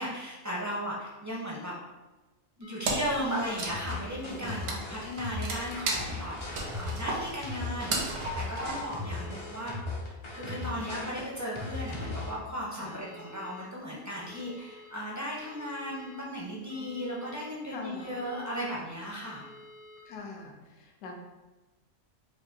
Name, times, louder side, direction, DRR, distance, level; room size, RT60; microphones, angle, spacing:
voice 1, 0.0-1.7 2.6-9.7 10.3-19.4, equal, 20° right, -5 dB, 0.5 m, -36 dB
sound 1, 2.6-3.3 3.9-4.6 5.2-5.9 6.5-7.2 7.7-8.5 9.0-9.7 10.3-11.0 11.6-12.3 12.9-13.6 14.1-14.9 15.4-16.2 16.7-17.4 18.0-18.7 19.3-20.0, left 1 dB, 85° right, 1.4 m, -51 dB
Wood, 2.8-3.2 3.5-9.1, right 2 dB, 70° right, 1.0 m, -34 dB
sound 2, 3.3-12.3, left 2 dB, 50° left, 0.3 m, -38 dB
voice 2, 4.2-5.0 12.8-13.0 16.7-17.1 17.7-18.1 20.1-21.1, left 4 dB, 75° left, 0 dB, 1.0 m, -45 dB
4.7 x 2.6 x 2.7 m, 1.1 s
omnidirectional pair, 1.4 m